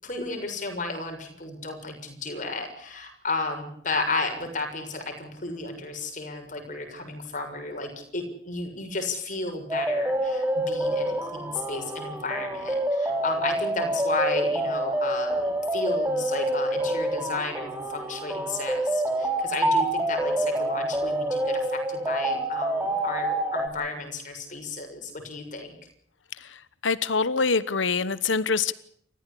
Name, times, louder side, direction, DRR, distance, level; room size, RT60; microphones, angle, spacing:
voice 1, 0.0-25.8, left 3 dB, 45° left, 4 dB, 6.8 m, -33 dB
sound 1, 9.7-23.7, right 1 dB, 10° right, 2.8 m, -27 dB
voice 2, 26.4-28.7, left 4 dB, 85° left, 16 dB, 1.1 m, -25 dB
29.0 x 15.0 x 8.5 m, 0.66 s
head